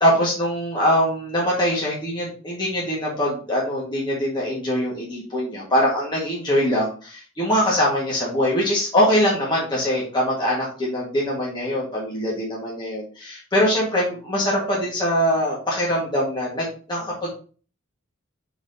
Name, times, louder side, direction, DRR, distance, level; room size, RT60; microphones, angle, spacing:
voice 1, 0.0-17.3, equal, 20° left, -5 dB, 1.7 m, -23 dB
5.9 x 4.2 x 4.1 m, 0.39 s
head